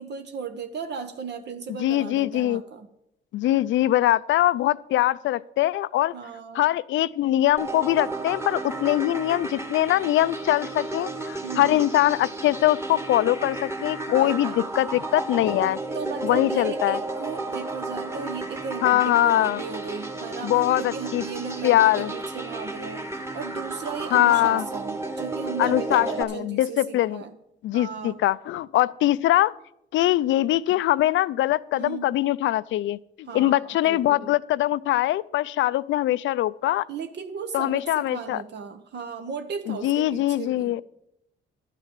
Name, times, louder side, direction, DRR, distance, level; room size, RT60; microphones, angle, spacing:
voice 1, 0.0-2.9 6.1-6.7 11.4-11.8 14.1-14.7 15.9-23.1 23.3-27.3 27.7-28.2 31.7-32.1 33.3-34.3 36.9-40.7, right 6 dB, 60° right, 8 dB, 1.0 m, -36 dB
voice 2, 1.8-2.6 3.3-6.1 6.5-15.8 16.2-17.0 18.8-19.6 20.4-21.2 21.6-22.1 24.1-24.6 25.6-27.2 27.6-29.5 29.9-36.8 37.5-38.4 39.7-40.8, left 14 dB, 75° left, 19 dB, 0.4 m, -22 dB
sound 1, 7.6-26.2, right 2 dB, 15° right, 1.5 m, -33 dB
11.0 x 6.7 x 8.2 m, 0.80 s
cardioid pair, 90°, 20 cm